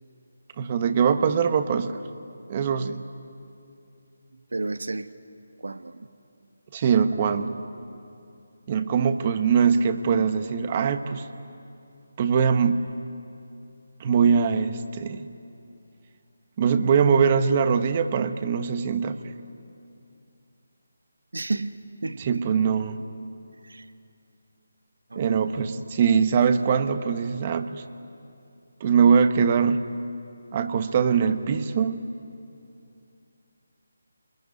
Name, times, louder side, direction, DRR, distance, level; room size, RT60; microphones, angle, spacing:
voice 1, 0.6-2.0 2.5-3.0 6.7-7.6 8.7-11.3 12.2-12.8 14.0-15.3 16.6-19.2 22.2-23.0 25.1-27.8 28.8-29.9 30.5-32.1, right 6 dB, 30° right, 1.3 m, -22 dB
voice 2, 4.5-5.1 5.6-6.1 21.3-22.4 23.6-23.9 25.1-25.5, right 3 dB, 75° right, 1.3 m, -32 dB
28.5 x 21.5 x 9.6 m
figure-of-eight pair, 155°, 0 cm